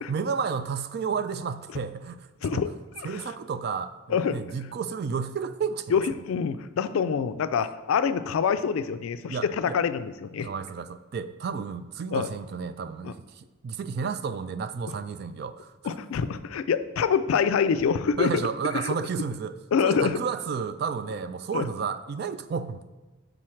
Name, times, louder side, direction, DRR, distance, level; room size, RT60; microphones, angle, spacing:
voice 1, 0.0-2.3 2.5-2.6 3.0-6.0 9.3-9.8 10.4-15.7 18.2-19.5 19.8-22.9, right 5 dB, 50° right, 12 dB, 0.3 m, -32 dB
voice 2, 3.0-3.3 4.1-4.4 5.9-10.5 12.1-12.3 13.0-13.1 15.8-18.3 18.7-18.9 19.7-20.2 21.5-21.7, left 6 dB, 90° left, 12 dB, 0.3 m, -26 dB
6.3 x 3.9 x 4.4 m, 1.1 s
head